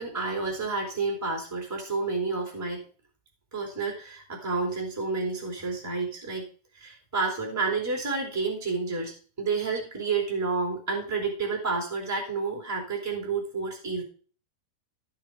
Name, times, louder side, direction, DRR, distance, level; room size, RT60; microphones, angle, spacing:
voice 1, 0.0-2.9 3.5-6.4 6.7-14.0, right 4 dB, 5° right, -1 dB, 2.9 m, -30 dB
14.0 x 6.7 x 4.8 m, 0.40 s
omnidirectional pair, 5.1 m